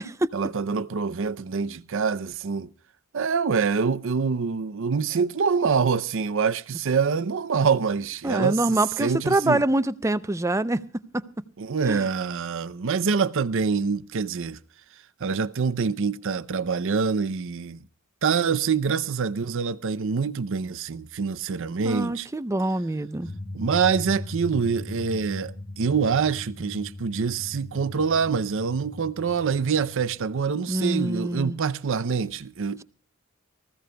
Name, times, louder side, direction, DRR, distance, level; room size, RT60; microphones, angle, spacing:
voice 1, 0.3-2.7 3.1-9.6 11.6-14.6 15.2-17.8 18.2-22.3 23.5-32.8, right 5 dB, 65° right, 0.6 m, -25 dB
voice 2, 8.2-10.8 11.1-11.2 11.9-12.1 21.8-23.3 30.7-31.6, right 1 dB, 15° right, 0.5 m, -25 dB
sound 1, 23.2-30.5, left 1 dB, 80° left, 6.2 m, -39 dB
25.0 x 15.5 x 2.2 m
head